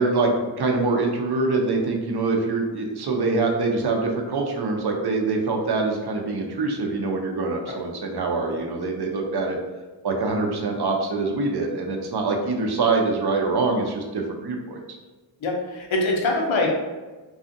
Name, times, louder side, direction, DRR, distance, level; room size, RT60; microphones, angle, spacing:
voice 1, 0.0-9.6 10.0-14.8, right 3 dB, 60° right, 2 dB, 0.5 m, -24 dB
voice 2, 15.4-16.8, left 2 dB, 85° left, -1 dB, 0.7 m, -24 dB
2.5 x 2.4 x 2.5 m, 1.2 s
wide cardioid pair, 60°, 46 cm